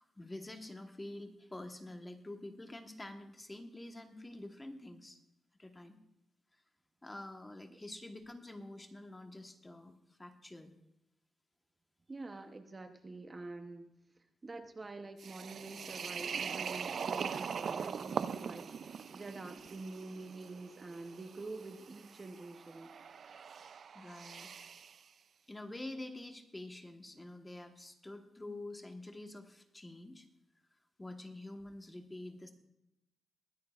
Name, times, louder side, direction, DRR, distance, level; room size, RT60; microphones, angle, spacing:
voice 1, 0.0-5.2 5.6-6.0 7.0-9.9 10.2-10.7 23.9-24.5 25.5-30.2 31.0-32.5, left 1 dB, 15° left, 5 dB, 1.2 m, -47 dB
voice 2, 12.1-13.9 14.4-18.7 19.1-22.9, right 3 dB, 25° right, 6 dB, 0.8 m, -46 dB
sound 1, 15.2-25.0, right 6 dB, 55° right, 0.4 m, -42 dB
22.0 x 9.5 x 2.4 m, 0.86 s
cardioid pair, 115°, 0 cm